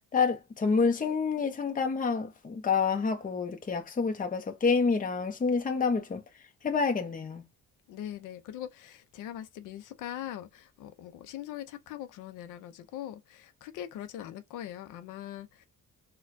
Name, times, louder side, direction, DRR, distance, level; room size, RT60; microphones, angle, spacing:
voice 1, 0.1-6.2 6.6-7.4, left 5 dB, 25° left, 0.8 m, -28 dB
voice 2, 7.9-15.7, left 11 dB, 90° left, 0.6 m, -41 dB
4.2 x 2.3 x 2.5 m
cardioid pair, 90°, 30 cm